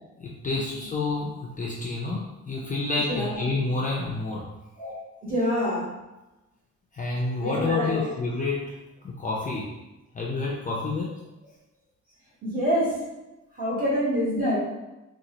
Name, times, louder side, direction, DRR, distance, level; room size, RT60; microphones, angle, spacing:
voice 1, 0.2-4.5 6.9-8.7 9.0-9.7 10.1-11.2, left 3 dB, 30° left, -4 dB, 0.4 m, -29 dB
voice 2, 3.1-3.4 4.8-4.9 5.2-5.9 7.4-8.1 12.4-13.0 13.6-14.6, equal, 30° right, -7 dB, 1.3 m, -26 dB
3.9 x 2.4 x 2.9 m, 1.0 s
wide cardioid pair, 170°, 30 cm